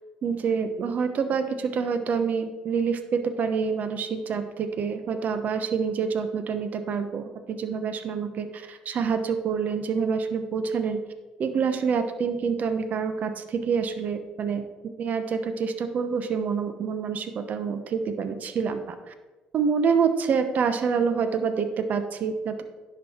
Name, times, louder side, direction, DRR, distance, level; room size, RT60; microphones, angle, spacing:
voice 1, 0.2-11.0 11.4-19.1 19.5-22.6, right 6 dB, 55° right, 9 dB, 0.9 m, -27 dB
10.5 x 6.3 x 4.4 m, 1.2 s
supercardioid pair, 75°, 3 cm